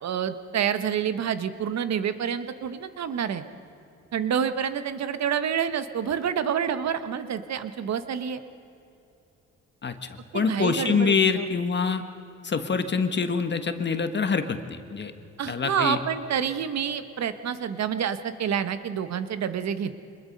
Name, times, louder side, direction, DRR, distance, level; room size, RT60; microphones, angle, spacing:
voice 1, 0.0-3.4 4.1-8.4 10.3-11.5 15.4-20.0, right 8 dB, 60° right, 11 dB, 1.3 m, -28 dB
voice 2, 10.3-12.0 12.4-15.1 15.5-16.0, left 5 dB, 35° left, 8 dB, 1.5 m, -25 dB
25.0 x 21.0 x 5.4 m, 2.8 s
cardioid pair, 90°, 30 cm